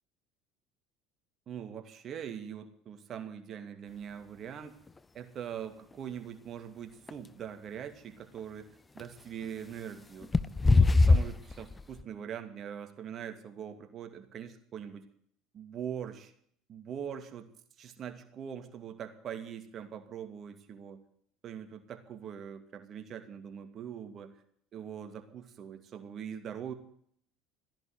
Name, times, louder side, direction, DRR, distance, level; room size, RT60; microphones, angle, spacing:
voice 1, 1.5-4.7 5.1-8.7 8.9-10.3 10.6-15.1 15.5-16.3 16.7-17.5 17.8-21.0 21.4-24.4 24.7-26.7, right 8 dB, 45° right, 7 dB, 2.5 m, -42 dB
sound 1, 4.9-5.0 7.1-7.2 9.0-9.1 10.2-12.0, left 3 dB, 20° left, 0.8 m, -22 dB
14.5 x 10.5 x 8.1 m, 0.64 s
supercardioid pair, 85°, 0 cm